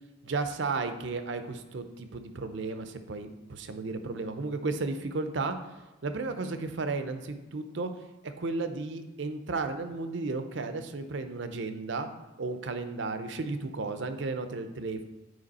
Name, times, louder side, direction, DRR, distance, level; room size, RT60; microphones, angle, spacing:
voice 1, 0.2-5.6 6.0-7.9 8.2-12.1 12.4-15.0, right 3 dB, 65° right, 9 dB, 0.6 m, -34 dB
7.7 x 4.7 x 4.1 m, 1.2 s
head